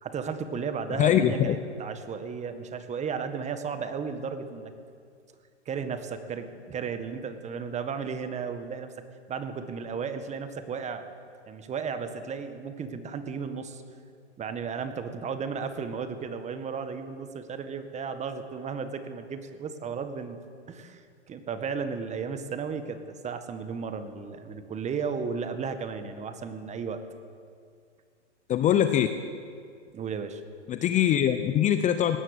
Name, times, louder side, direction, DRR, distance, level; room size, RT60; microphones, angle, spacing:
voice 1, 0.0-4.7 5.6-8.9 9.3-11.1 11.5-13.8 14.4-20.4 20.7-27.0 29.9-30.4, right 6 dB, 20° right, 9 dB, 1.7 m, -34 dB
voice 2, 1.0-1.6 28.5-29.1 30.7-32.2, left 10 dB, 20° left, 9 dB, 0.8 m, -22 dB
19.5 x 18.0 x 8.3 m, 2.2 s
hypercardioid pair, 120°, 36 cm